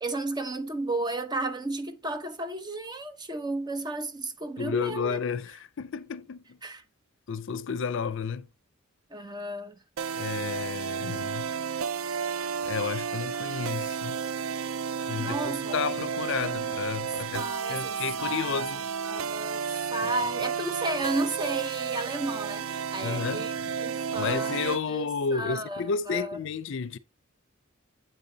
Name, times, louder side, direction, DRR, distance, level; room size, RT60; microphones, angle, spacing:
voice 1, 0.0-5.2 6.6-6.8 9.1-9.7 15.2-15.7 16.4-16.7 17.3-18.6 19.0-23.5 23.8-26.4, right 2 dB, 20° right, 0.8 m, -33 dB
voice 2, 4.6-6.6 7.3-8.5 10.2-11.5 12.6-14.2 15.1-18.9 23.0-23.7 24.1-27.0, left 5 dB, 60° left, 0.5 m, -32 dB
sound 1, 10.0-24.8, right 7 dB, 75° right, 0.4 m, -32 dB
8.3 x 6.9 x 2.7 m
head